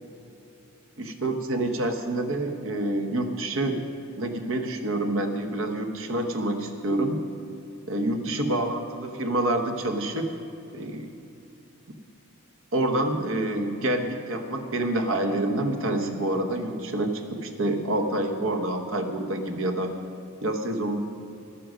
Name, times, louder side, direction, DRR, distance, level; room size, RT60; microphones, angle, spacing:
voice 1, 1.0-3.8 4.2-7.2 7.9-10.3 10.7-11.1 12.7-20.0 20.4-21.0, right 1 dB, 65° right, 6 dB, 1.0 m, -27 dB
11.5 x 9.9 x 6.3 m, 2.8 s
head